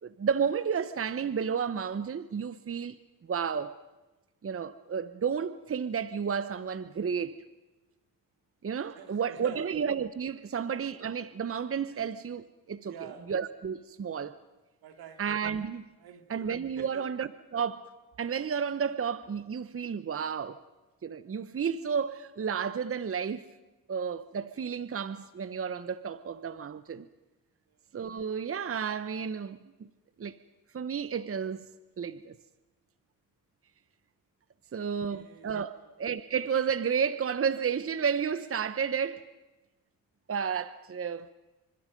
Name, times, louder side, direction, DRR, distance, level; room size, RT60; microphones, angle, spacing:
voice 1, 0.0-3.0 3.3-3.7 4.4-7.3 8.6-12.9 13.3-14.4 15.2-15.8 16.3-17.9 18.2-20.6 21.0-23.5 23.9-27.1 27.9-29.7 30.2-30.4 30.7-32.4 34.7-39.3 40.3-41.3, right 7 dB, 35° right, 1.0 m, -32 dB
voice 2, 8.9-9.7 10.5-10.6 11.9-12.0 12.9-13.3 14.8-15.3 16.0-16.5 16.8-17.1 27.7-27.8 34.7-35.9, right 8 dB, 80° right, 3.0 m, -49 dB
29.5 x 26.0 x 5.3 m
cardioid pair, 70°, 36 cm